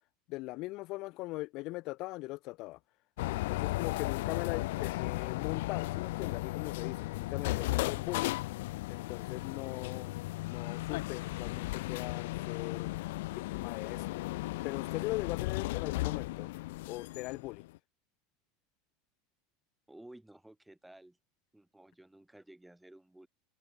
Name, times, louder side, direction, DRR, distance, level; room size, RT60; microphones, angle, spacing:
voice 1, 0.3-2.8 3.3-8.3 8.9-10.1 10.4-12.9 13.3-14.3 14.6-16.5 16.9-17.6, left 21 dB, 40° left, 0.8 m, -40 dB
sound 1, 3.2-17.8, left 19 dB, 70° left, 0.4 m, -35 dB
voice 2, 19.9-21.2 21.5-23.3, right 1 dB, 5° right, 3.7 m, -54 dB
supercardioid pair, 175°, 0 cm